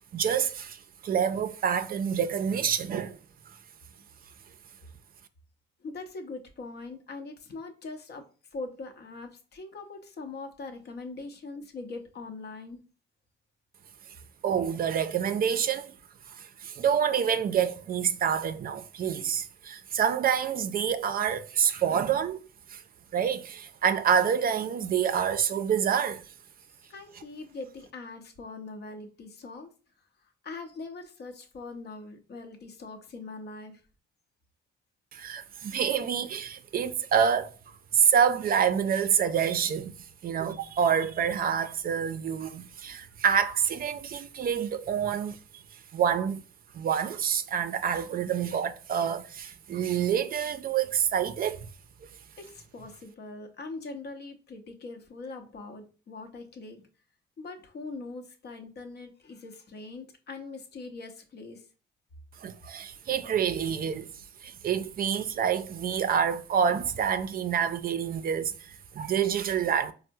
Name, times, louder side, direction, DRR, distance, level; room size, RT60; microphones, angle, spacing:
voice 1, 0.1-3.2 14.4-15.9 16.3-22.4 22.7-22.8 23.1-26.3 35.1-37.5 37.9-39.9 40.2-45.6 45.9-46.4 46.7-51.7 62.4-64.1 64.4-69.9, right 8 dB, 50° right, 0.4 m, -27 dB
voice 2, 5.8-8.2 8.5-12.8 26.9-29.7 30.2-33.8 42.9-43.0 52.4-56.9 57.4-61.6, left 3 dB, 55° left, 0.8 m, -42 dB
4.3 x 2.0 x 2.7 m
cardioid pair, 90°, 20 cm